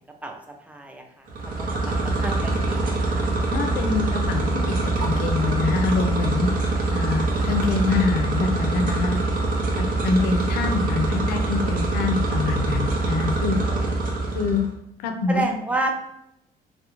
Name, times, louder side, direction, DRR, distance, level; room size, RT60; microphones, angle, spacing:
voice 1, 0.7-3.2 10.6-10.7 11.1-11.8 13.6-13.8 15.3-15.9, right 2 dB, 10° right, 3 dB, 0.3 m, -31 dB
sound 1, 1.3-14.7, right 2 dB, 55° right, 0.6 m, -24 dB
voice 2, 3.5-4.5 5.0-6.5 6.9-9.2 9.7-13.6 14.3-14.6 15.0-15.4, left 4 dB, 75° left, 5 dB, 0.4 m, -25 dB
2.3 x 2.1 x 2.9 m, 0.78 s
cardioid pair, 110°, 17 cm